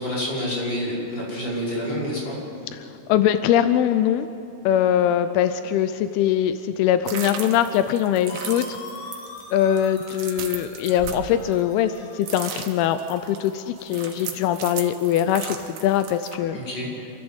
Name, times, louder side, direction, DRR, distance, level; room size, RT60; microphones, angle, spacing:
voice 1, 0.0-2.4 16.5-16.9, equal, 30° left, -6 dB, 6.3 m, -28 dB
voice 2, 3.1-4.3 4.7-8.8 9.5-16.6, left 10 dB, 85° left, 10 dB, 2.6 m, -22 dB
sound 1, 7.1-12.0 12.2-16.4, right 8 dB, 75° right, 3.3 m, -36 dB
sound 2, 8.3-14.1, left 3 dB, 60° left, 3.7 m, -43 dB
27.5 x 14.0 x 8.0 m, 2.8 s
omnidirectional pair, 4.4 m